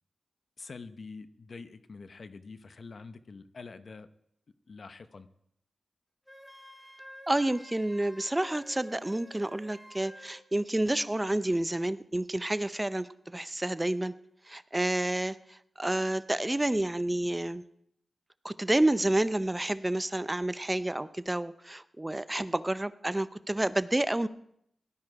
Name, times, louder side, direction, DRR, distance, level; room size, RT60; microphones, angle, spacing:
voice 1, 0.6-4.1 4.7-5.3, left 4 dB, 60° left, 11 dB, 0.9 m, -46 dB
Wind instrument woodwind instrument, 6.3-10.5, equal, 5° left, 1.7 m, -51 dB
voice 2, 7.3-14.1 14.5-17.6 18.4-24.3, right 1 dB, 20° right, 14 dB, 0.6 m, -29 dB
18.0 x 12.0 x 4.8 m, 0.73 s
cardioid pair, 55°, 0 cm